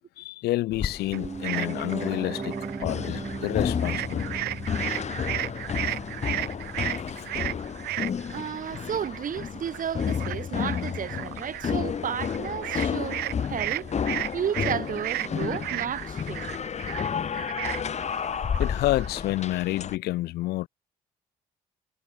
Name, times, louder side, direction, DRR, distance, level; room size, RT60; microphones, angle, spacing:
voice 1, 0.2-2.5 2.8-4.3 18.6-20.7, left 17 dB, 80° left, 0.6 m, -29 dB
sound 1, 0.7-20.0, left 7 dB, 45° left, 0.9 m, -31 dB
Piano, 1.1-11.1 11.4-11.5, right 4 dB, 30° right, 1.5 m, -40 dB
sound 2, 1.1-3.5 3.8-19.2, right 17 dB, 75° right, 0.5 m, -35 dB
voice 2, 8.3-16.5 17.7-17.9, right 8 dB, 55° right, 1.5 m, -33 dB
supercardioid pair, 60°, 16 cm